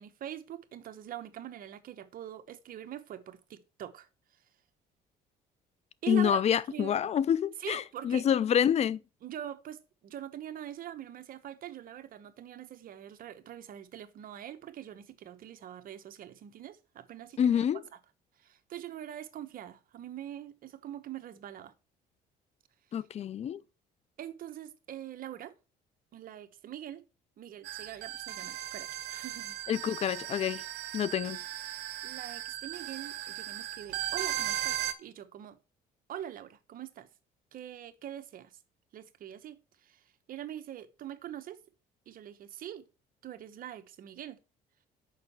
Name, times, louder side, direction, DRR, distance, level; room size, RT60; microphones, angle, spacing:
voice 1, 0.0-4.1 6.0-6.4 6.7-7.0 7.6-8.3 9.2-17.6 18.4-21.7 24.2-25.5 26.1-27.0 27.4-29.6 32.0-35.6 36.1-37.1 37.5-38.6 38.9-41.6 42.1-42.9 43.2-44.4, right 11 dB, 55° right, 1.0 m, -43 dB
voice 2, 6.1-9.0 17.4-17.8 22.9-23.6 29.7-30.6 30.9-31.4, left 9 dB, 40° left, 0.4 m, -27 dB
sound 1, 27.6-34.9, right 13 dB, 85° right, 0.9 m, -37 dB
6.5 x 5.4 x 5.6 m
cardioid pair, 110°, 17 cm